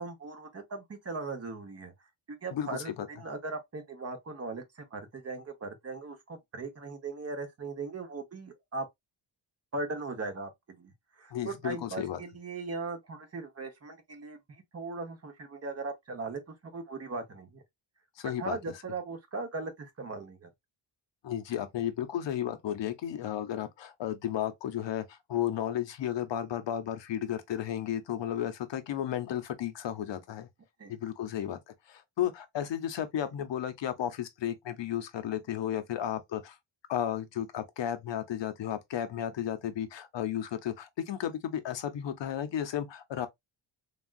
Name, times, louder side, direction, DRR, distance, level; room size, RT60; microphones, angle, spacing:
voice 1, 0.0-1.9 2.3-8.9 9.7-17.6 18.2-20.5 30.8-30.9, right 3 dB, 30° right, 0.9 m, -39 dB
voice 2, 2.5-3.1 11.3-12.2 18.2-18.6 21.2-30.5 30.9-36.6 36.9-43.3, left 10 dB, 60° left, 0.7 m, -33 dB
3.4 x 2.4 x 2.3 m
wide cardioid pair, 135°, 49 cm